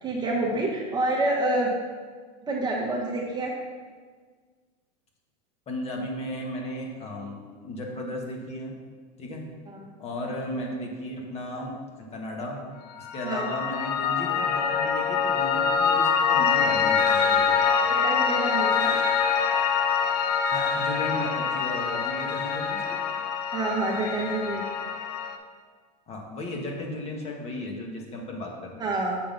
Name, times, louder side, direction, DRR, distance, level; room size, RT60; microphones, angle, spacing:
voice 1, 0.0-1.7 2.5-3.5 9.7-9.9 13.2-13.5 17.9-18.9 23.5-24.6 28.8-29.2, right 2 dB, 20° right, -3 dB, 1.1 m, -27 dB
voice 2, 5.7-7.4 7.6-8.8 9.2-9.5 10.0-11.7 12.1-12.6 13.0-17.6 20.5-23.0 26.1-28.8, left 1 dB, 30° left, 0 dB, 1.5 m, -35 dB
Piano, 13.0-25.4, left 6 dB, 90° left, 0.7 m, -25 dB
6.7 x 3.8 x 5.4 m, 1.5 s
supercardioid pair, 125°, 20 cm